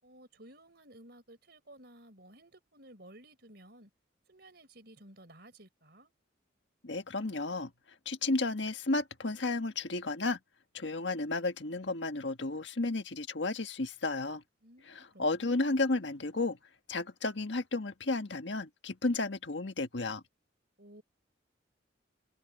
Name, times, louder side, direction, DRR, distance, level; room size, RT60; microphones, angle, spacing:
voice 1, 0.0-3.9 4.3-6.1 14.6-15.6 20.8-21.0, right 1 dB, 55° right, 5.3 m, -55 dB
voice 2, 6.8-7.7 8.0-10.4 10.7-14.4 14.9-16.6 16.9-20.2, left 2 dB, 75° left, 1.6 m, -33 dB
open air
head